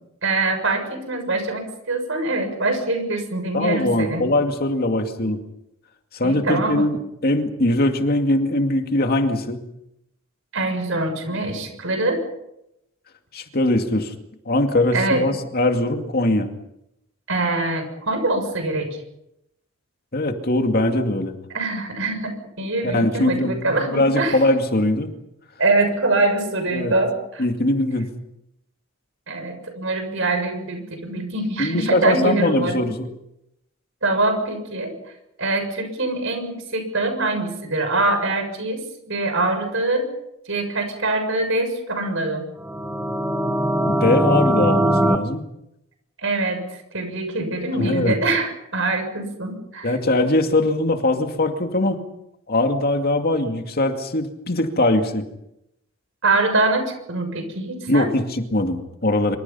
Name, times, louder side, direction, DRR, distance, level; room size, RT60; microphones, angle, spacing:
voice 1, 0.2-4.2 6.2-6.8 10.5-12.2 14.9-15.3 17.3-18.9 21.5-24.4 25.6-27.4 29.3-32.9 34.0-34.9 35.4-40.1 40.5-42.5 46.2-46.6 46.9-49.9 56.2-58.1, right 2 dB, 65° right, 6 dB, 7.0 m, -24 dB
voice 2, 3.5-5.4 6.1-9.6 13.3-14.1 14.5-16.5 20.1-21.3 22.8-25.1 26.7-26.9 27.4-28.1 31.6-33.1 43.9-45.4 47.8-48.2 49.8-52.0 52.5-55.2 57.9-59.4, left 1 dB, 45° left, 5 dB, 2.4 m, -21 dB
sound 1, 42.6-45.2, right 1 dB, 5° right, 1.5 m, -20 dB
26.0 x 25.5 x 5.7 m, 0.82 s
head